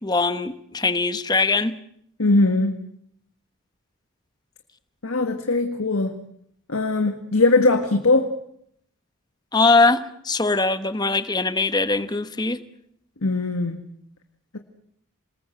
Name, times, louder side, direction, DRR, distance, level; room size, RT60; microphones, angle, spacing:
voice 1, 0.0-1.8 9.5-12.6, left 3 dB, 20° left, 11 dB, 1.1 m, -21 dB
voice 2, 2.2-2.8 5.0-6.2 6.7-8.3 13.2-13.8, left 3 dB, 70° left, 6 dB, 1.7 m, -20 dB
28.0 x 19.5 x 7.9 m, 0.72 s
head